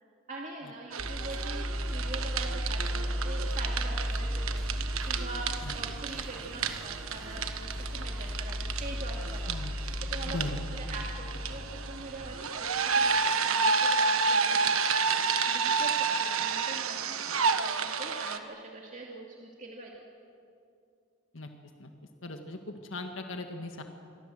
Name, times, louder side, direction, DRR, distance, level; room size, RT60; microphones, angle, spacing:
voice 1, 0.3-4.6 5.0-9.8 10.1-10.4 10.8-17.1 17.4-19.9, right 2 dB, 35° right, -1 dB, 2.5 m, -43 dB
sound 1, 0.9-18.4, right 5 dB, 90° right, 1.4 m, -31 dB
sound 2, 1.0-12.6, equal, 5° left, 1.7 m, -35 dB
voice 2, 10.3-10.6 21.3-21.5 21.8-21.9 22.2-23.8, left 2 dB, 70° left, 5 dB, 1.7 m, -38 dB
27.5 x 23.0 x 7.8 m, 2.5 s
head